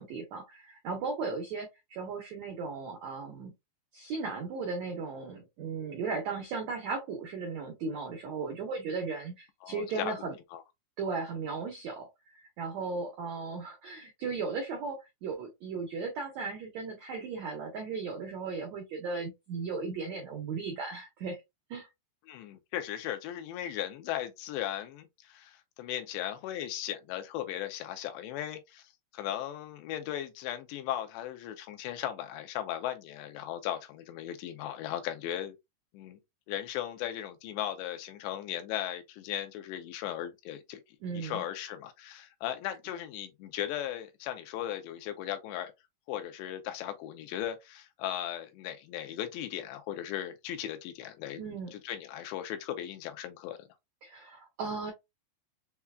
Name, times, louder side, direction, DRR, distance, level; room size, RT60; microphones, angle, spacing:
voice 1, 0.0-3.5 3.9-10.3 11.0-12.1 12.6-21.4 21.7-21.9 41.0-41.4 51.4-51.7 54.0-54.9, right 4 dB, 85° right, 1.6 m, -36 dB
voice 2, 9.6-10.1 10.5-10.6 22.3-35.6 35.9-36.2 36.5-40.8 41.1-45.7 46.1-51.4 51.7-53.7, left 11 dB, 85° left, 2.9 m, -37 dB
6.9 x 2.4 x 2.3 m
omnidirectional pair, 4.9 m